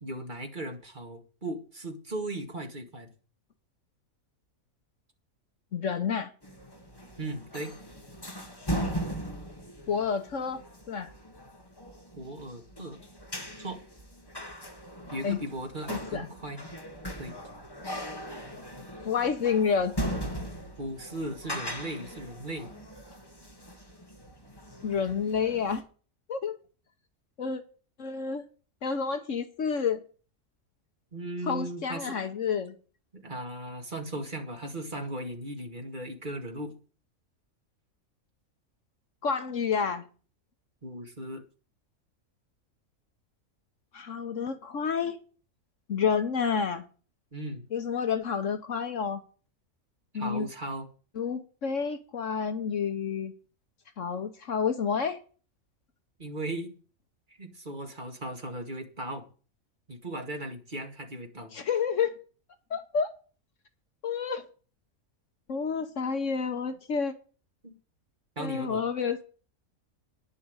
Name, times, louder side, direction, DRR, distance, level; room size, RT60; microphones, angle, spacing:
voice 1, 0.0-3.1 7.2-7.7 12.1-13.0 13.6-13.8 15.1-16.6 17.2-17.3 20.8-22.7 31.1-32.2 33.1-36.7 40.8-41.4 47.3-47.6 50.1-50.9 56.2-56.7 57.3-59.2 59.9-61.5 67.6-67.8 68.4-68.8, right 1 dB, 35° right, 2.1 m, -37 dB
voice 2, 5.7-6.3 9.9-11.1 15.2-15.4 15.9-16.3 19.0-19.9 24.8-25.8 26.3-26.6 27.4-27.6 28.0-28.4 28.8-30.0 31.5-32.7 39.2-40.0 43.9-45.2 45.9-46.8 47.7-49.2 50.1-50.5 51.1-53.3 54.0-55.2 61.5-62.2 62.7-63.1 64.0-64.4 65.5-67.1 68.4-69.2, left 6 dB, 60° left, 1.3 m, -29 dB
sound 1, 6.4-25.8, equal, 15° left, 1.8 m, -39 dB
10.0 x 7.2 x 8.1 m
omnidirectional pair, 1.5 m